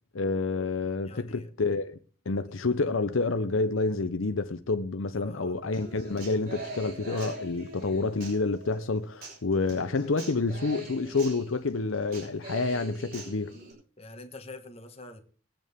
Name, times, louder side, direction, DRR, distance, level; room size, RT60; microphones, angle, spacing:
voice 1, 0.1-2.0 2.3-13.5, left 3 dB, 70° left, 0.7 m, -28 dB
voice 2, 1.0-1.5 5.2-5.7 14.0-15.2, left 2 dB, 30° left, 1.4 m, -45 dB
Human voice / Acoustic guitar, 5.7-13.7, right 1 dB, 45° right, 7.3 m, -43 dB
21.5 x 8.9 x 3.6 m
head